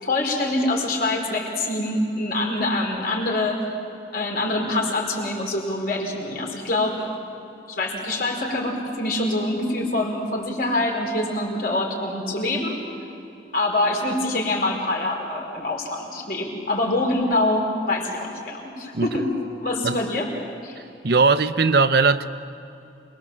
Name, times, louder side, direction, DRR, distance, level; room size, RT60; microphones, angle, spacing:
voice 1, 0.0-3.6 4.1-7.1 7.7-12.8 13.5-19.3 19.6-20.3 20.6-20.8, left 2 dB, 55° left, 4.9 m, -25 dB
voice 2, 21.0-22.3, right 4 dB, 60° right, 0.7 m, -19 dB
28.0 x 21.5 x 7.5 m
head